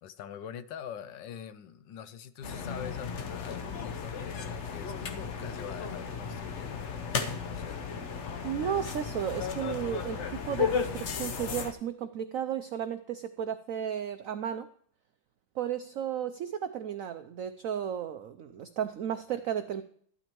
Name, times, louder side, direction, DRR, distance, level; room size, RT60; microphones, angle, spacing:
voice 1, 0.0-8.0, left 8 dB, 75° left, 12 dB, 1.4 m, -44 dB
sound 1, 2.4-11.7, left 6 dB, 50° left, 0.9 m, -35 dB
voice 2, 8.4-14.7 15.6-19.8, right 9 dB, 90° right, 10 dB, 0.7 m, -34 dB
14.5 x 12.0 x 3.0 m, 0.62 s
omnidirectional pair, 2.0 m